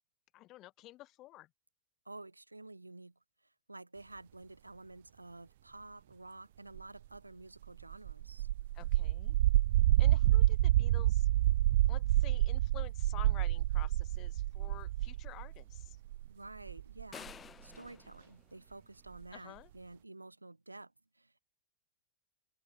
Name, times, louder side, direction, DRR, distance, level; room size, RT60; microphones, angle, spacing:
voice 1, 0.3-1.5 8.7-9.4 10.0-11.3 11.9-16.0 19.3-19.7, left 17 dB, 35° left, 2.8 m, -51 dB
voice 2, 2.0-8.5 16.3-21.4, right 2 dB, 85° right, 1.3 m, -51 dB
sound 1, 6.8-6.9 7.8-16.3 16.7-17.3 19.2-19.3, right 15 dB, 55° right, 0.5 m, -28 dB
sound 2, 17.1-19.3, left 7 dB, 20° left, 4.6 m, -52 dB
figure-of-eight pair, 90°, 0 cm